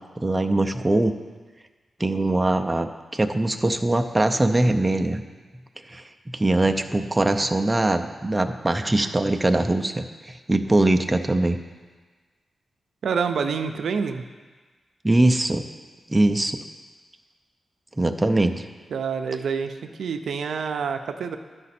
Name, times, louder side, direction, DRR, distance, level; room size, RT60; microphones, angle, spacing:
voice 1, 0.2-1.1 2.0-5.2 5.9-6.0 6.3-11.6 15.0-15.6 16.1-16.6 18.0-18.6, right 2 dB, 15° right, 5 dB, 0.5 m, -22 dB
voice 2, 13.0-14.2 18.9-21.4, right 6 dB, 85° right, 7 dB, 0.4 m, -27 dB
11.5 x 5.1 x 4.2 m, 1.4 s
cardioid pair, 85°, 0 cm